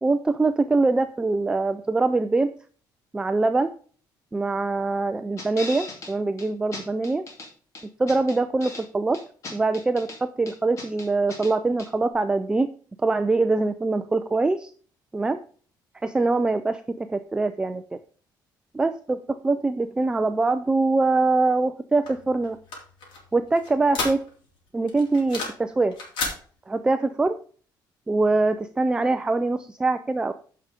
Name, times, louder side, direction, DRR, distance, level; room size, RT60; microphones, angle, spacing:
voice 1, 0.0-2.5 3.1-3.7 4.3-7.2 8.0-9.2 9.5-12.7 13.0-14.7 15.1-15.4 16.0-17.8 18.8-19.2 19.4-22.6 23.3-24.2 24.7-26.0 26.7-27.4 28.1-30.3, right 3 dB, 10° right, 9 dB, 0.4 m, -23 dB
sound 1, 5.4-6.1 6.4-6.5 6.7-7.5 7.7-8.8 9.1-10.2 10.5-11.5 11.8-11.9, left 3 dB, 40° left, 2.5 m, -38 dB
sound 2, 22.0-24.6 24.9-25.7 25.9-26.4, left 3 dB, 85° left, 3.6 m, -32 dB
9.5 x 5.6 x 5.1 m, 0.43 s
cardioid pair, 165°, 8 cm